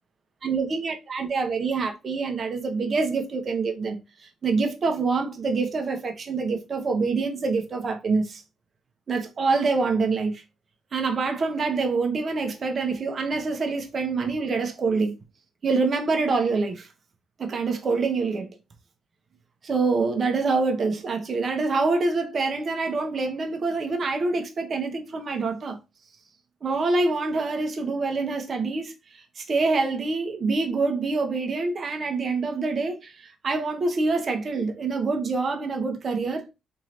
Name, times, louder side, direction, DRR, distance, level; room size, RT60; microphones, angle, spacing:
voice 1, 0.4-4.0 4.4-8.4 9.1-10.4 10.9-15.1 15.6-16.9 17.4-18.5 19.6-25.8 26.6-28.9 29.4-36.5, right 4 dB, 45° right, 0.8 m, -26 dB
3.6 x 3.1 x 3.0 m
cardioid pair, 90°, 0 cm